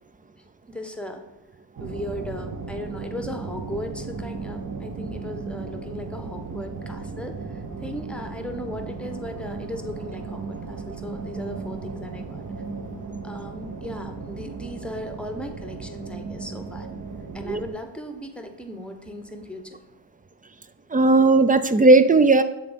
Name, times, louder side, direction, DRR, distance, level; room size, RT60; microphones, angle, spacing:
voice 1, 0.4-1.2 1.8-12.4 13.2-16.9 17.3-19.8, left 1 dB, ahead, 5 dB, 0.9 m, -37 dB
sound 1, 1.8-17.7, right 4 dB, 40° right, 0.9 m, -35 dB
voice 2, 20.9-22.4, right 3 dB, 20° right, 12 dB, 0.4 m, -16 dB
7.6 x 3.6 x 5.2 m, 1.0 s
cardioid pair, 55°, 47 cm